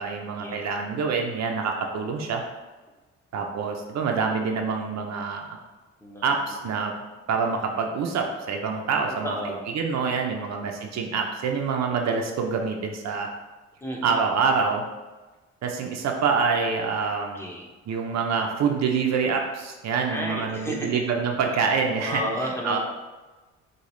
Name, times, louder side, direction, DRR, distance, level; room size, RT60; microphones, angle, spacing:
voice 1, 0.0-2.4 3.3-5.6 6.2-6.9 7.3-9.4 9.7-13.3 14.0-14.9 15.6-17.5 17.9-22.2 22.6-22.8, right 5 dB, 60° right, 2 dB, 0.6 m, -26 dB
voice 2, 9.2-9.6 10.4-10.8 13.8-14.4 17.2-17.6 20.1-21.0 22.0-22.8, equal, 10° left, -2 dB, 1.0 m, -32 dB
6.5 x 2.3 x 3.1 m, 1.2 s
cardioid pair, 90°, 30 cm